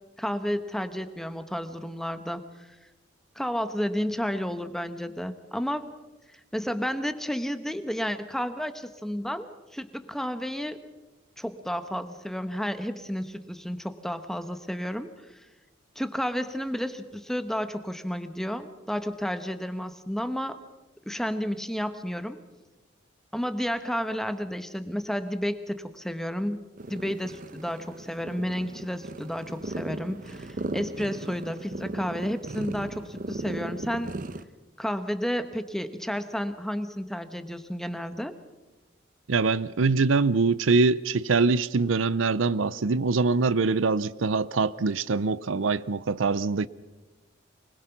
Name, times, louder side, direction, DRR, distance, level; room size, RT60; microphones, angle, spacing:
voice 1, 0.2-2.7 3.3-5.9 6.3-10.8 11.4-15.5 15.9-20.6 21.1-22.4 23.3-26.6 26.9-34.1 34.8-38.3, equal, ahead, 1.0 m, -31 dB
sound 1, 26.8-34.4, right 2 dB, 45° right, 0.9 m, -37 dB
voice 2, 39.3-46.7, right 4 dB, 85° right, 0.6 m, -24 dB
24.5 x 21.0 x 5.9 m
head